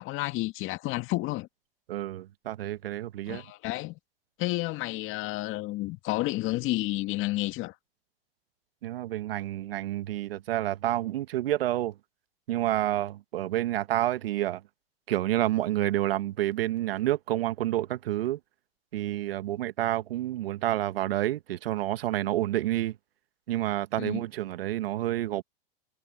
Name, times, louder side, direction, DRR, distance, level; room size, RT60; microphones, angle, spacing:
voice 1, 0.0-1.5 3.3-4.0 4.4-7.7 24.0-24.2, left 19 dB, 45° left, 2.0 m, -31 dB
voice 2, 1.9-3.4 8.8-11.9 12.5-14.6 15.1-18.4 18.9-23.0 23.5-25.4, right 14 dB, 75° right, 1.4 m, -29 dB
hypercardioid pair, 110°, 29 cm